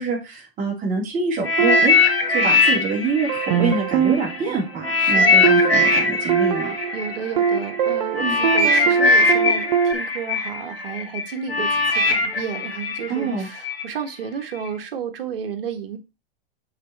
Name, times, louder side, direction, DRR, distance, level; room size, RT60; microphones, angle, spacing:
voice 1, 0.0-1.9 2.3-6.7 8.2-8.4 13.1-13.5, right 4 dB, 25° right, 3.4 m, -25 dB
sound 1, 1.4-4.4 4.8-13.8 14.5-14.7, left 3 dB, 90° left, 1.6 m, -20 dB
sound 2, 1.6-2.8 3.3-9.9, right 7 dB, 50° right, 0.8 m, -23 dB
voice 2, 5.0-5.4 6.9-16.0, right 7 dB, 65° right, 1.5 m, -32 dB
6.7 x 4.5 x 4.4 m
hypercardioid pair, 110°, 29 cm